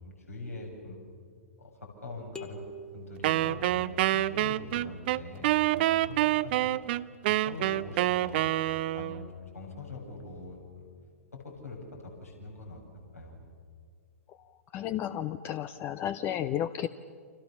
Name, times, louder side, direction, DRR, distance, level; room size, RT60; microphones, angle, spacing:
voice 1, 0.0-1.0 1.6-2.6 2.9-6.7 7.2-8.5 8.9-10.9 11.3-12.8 13.1-13.4, left 3 dB, 85° left, -1 dB, 7.5 m, -43 dB
sound 1, 2.3-4.2, equal, 10° left, 1.4 m, -46 dB
Wind instrument woodwind instrument, 3.2-9.3, right 15 dB, 45° right, 0.6 m, -27 dB
voice 2, 14.7-16.9, left 11 dB, 30° left, 13 dB, 0.7 m, -32 dB
29.5 x 26.5 x 7.2 m, 2.2 s
figure-of-eight pair, 110°, 8 cm